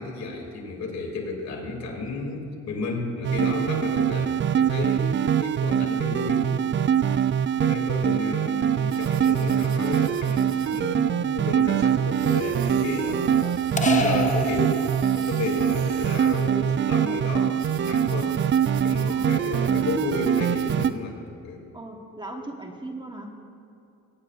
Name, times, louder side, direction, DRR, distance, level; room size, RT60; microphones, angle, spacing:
voice 1, 0.0-6.5 7.6-14.8 15.1-18.4 18.8-21.2 21.4-21.6, left 3 dB, 65° left, 0 dB, 2.9 m, -32 dB
sound 1, 3.2-20.9, right 8 dB, 40° right, 0.4 m, -23 dB
sound 2, 8.9-20.9, right 8 dB, 70° right, 1.0 m, -45 dB
sound 3, 13.8-15.4, left 2 dB, 25° left, 0.8 m, -28 dB
voice 2, 19.0-19.4 21.7-23.3, right 1 dB, 15° right, 2 dB, 1.3 m, -39 dB
23.0 x 10.5 x 2.5 m, 2.8 s
cardioid pair, 90°, 30 cm